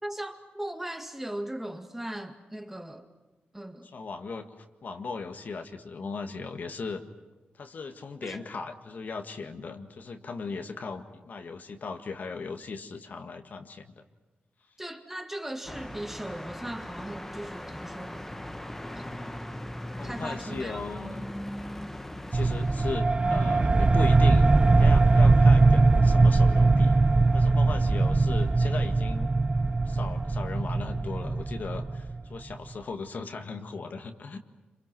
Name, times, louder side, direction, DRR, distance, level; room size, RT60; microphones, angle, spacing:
voice 1, 0.0-3.1 3.5-3.9 8.2-8.4 14.8-18.3 18.9-19.3 20.0-21.2, right 1 dB, 10° right, 2.1 m, -38 dB
voice 2, 3.8-7.0 7.5-14.0 20.0-21.3 22.3-24.5 24.8-27.0 27.3-29.3 29.8-34.4, left 4 dB, 55° left, 1.8 m, -38 dB
sound 1, 15.6-23.0, left 1 dB, 10° left, 1.2 m, -39 dB
sound 2, 22.3-32.5, right 3 dB, 25° right, 0.7 m, -21 dB
27.5 x 27.0 x 6.2 m
wide cardioid pair, 110°, 3 cm